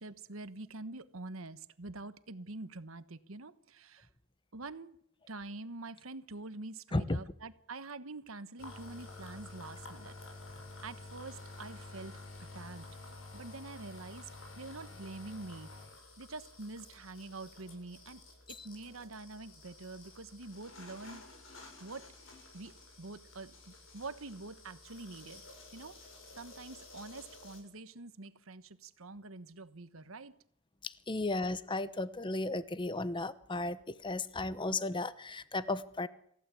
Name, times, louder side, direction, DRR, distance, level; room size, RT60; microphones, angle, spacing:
voice 1, 0.0-4.1 4.5-5.0 5.3-10.1 10.8-12.9 13.3-15.7 16.2-18.2 18.5-21.3 21.8-22.1 22.5-25.4 25.7-26.0 26.3-30.4, right 3 dB, 85° right, 13 dB, 1.2 m, -46 dB
sound 1, 8.6-27.6, left 2 dB, 75° left, 7.5 m, -51 dB
voice 2, 30.8-36.1, left 2 dB, 25° left, 15 dB, 0.9 m, -34 dB
27.0 x 15.5 x 8.4 m, 0.72 s
head